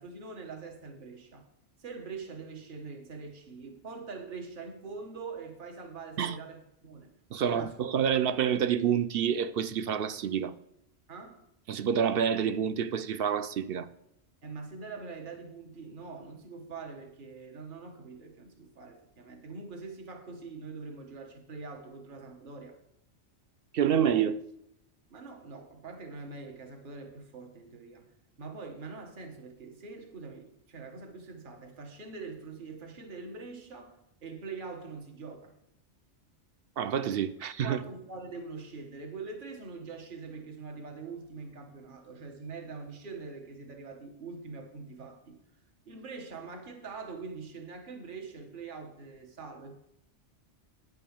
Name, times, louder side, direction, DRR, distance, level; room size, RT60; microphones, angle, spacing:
voice 1, 0.0-1.5 1.8-7.1 7.5-7.8 11.1-11.4 14.4-22.8 25.1-28.1 28.4-35.5 37.6-45.4 45.9-49.7, right 4 dB, 45° right, 1.4 m, -43 dB
voice 2, 7.3-10.5 11.7-13.9 23.7-24.4 36.8-37.8, right 8 dB, 60° right, 0.7 m, -28 dB
9.5 x 5.5 x 7.1 m
omnidirectional pair, 1.2 m